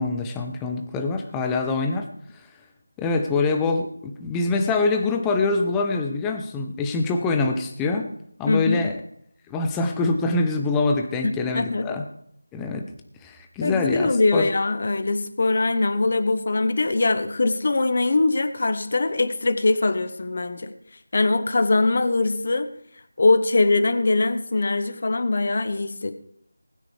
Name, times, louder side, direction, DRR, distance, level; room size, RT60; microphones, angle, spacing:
voice 1, 0.0-2.1 2.3-2.4 3.0-8.1 8.4-9.0 9.5-12.0 12.5-12.8 13.2-14.5, left 3 dB, 5° left, 4 dB, 0.6 m, -24 dB
voice 2, 8.5-8.8 11.2-11.9 13.6-20.8 21.1-22.7 23.2-26.1, left 3 dB, 40° left, 10 dB, 1.0 m, -22 dB
20.0 x 9.7 x 3.4 m, 0.70 s
figure-of-eight pair, 175°, 0 cm